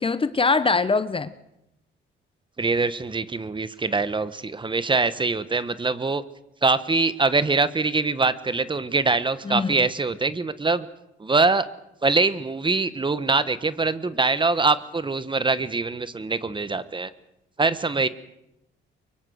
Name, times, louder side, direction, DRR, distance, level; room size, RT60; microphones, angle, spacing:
voice 1, 0.0-1.3 9.4-9.9, left 4 dB, 25° left, 14 dB, 1.0 m, -23 dB
voice 2, 2.6-6.2 6.6-10.9 11.2-11.7 12.0-17.1 17.6-18.1, right 3 dB, 25° right, 14 dB, 1.2 m, -23 dB
24.0 x 23.0 x 6.5 m, 0.84 s
cardioid pair, 90°, 20 cm